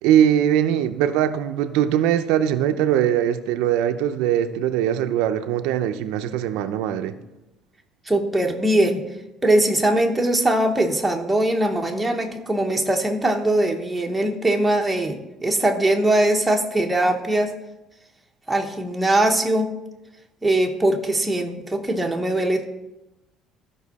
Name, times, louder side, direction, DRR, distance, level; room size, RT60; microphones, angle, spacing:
voice 1, 0.0-7.1, right 10 dB, 90° right, 8 dB, 0.6 m, -21 dB
voice 2, 8.1-9.0 9.4-17.5 18.5-19.7 20.4-22.7, right 1 dB, 5° right, 2 dB, 0.9 m, -21 dB
14.0 x 5.3 x 4.1 m, 0.97 s
cardioid pair, 160°, 0 cm